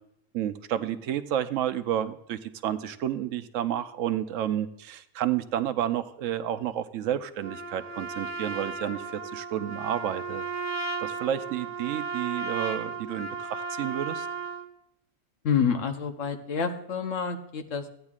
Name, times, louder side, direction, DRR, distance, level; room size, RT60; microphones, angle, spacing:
voice 1, 0.3-10.4 11.0-14.3, right 11 dB, 75° right, 11 dB, 1.0 m, -30 dB
Trumpet, 7.4-14.7, right 5 dB, 15° left, 0.7 m, -35 dB
voice 2, 15.4-17.9, left 6 dB, 70° left, 6 dB, 1.3 m, -28 dB
15.0 x 9.6 x 2.4 m, 0.75 s
omnidirectional pair, 1.3 m